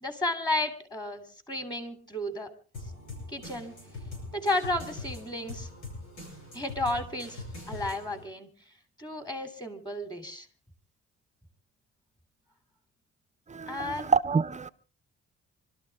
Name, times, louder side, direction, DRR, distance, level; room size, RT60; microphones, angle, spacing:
voice 1, 0.0-2.5 3.3-3.7 4.3-5.7 6.5-7.4 7.7-8.5 9.0-10.5 13.7-14.1, left 1 dB, 15° left, 3.1 m, -32 dB
sound 1, 2.7-8.2, left 2 dB, 85° left, 7.4 m, -42 dB
voice 2, 13.5-14.7, right 5 dB, 25° right, 0.7 m, -27 dB
25.5 x 13.0 x 3.6 m
cardioid pair, 90°, 30 cm